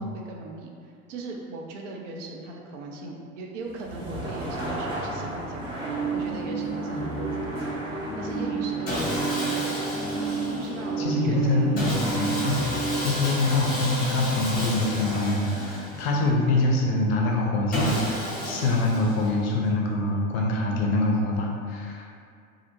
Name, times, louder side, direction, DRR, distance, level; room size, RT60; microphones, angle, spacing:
voice 1, 0.0-9.4 10.6-11.6 12.3-12.5 18.5-18.8, right 3 dB, 60° right, 0 dB, 0.5 m, -39 dB
sound 1, 3.6-15.5, right 1 dB, 15° right, 0.5 m, -37 dB
sound 2, 5.8-13.0, right 5 dB, 75° right, 1.4 m, -31 dB
Sawing, 8.9-10.9 11.8-16.3 17.7-19.5, left 1 dB, 20° left, 0.8 m, -31 dB
voice 2, 11.0-22.1, left 2 dB, 50° left, -1 dB, 0.5 m, -25 dB
2.4 x 2.0 x 2.8 m, 2.3 s
figure-of-eight pair, 80°, 42 cm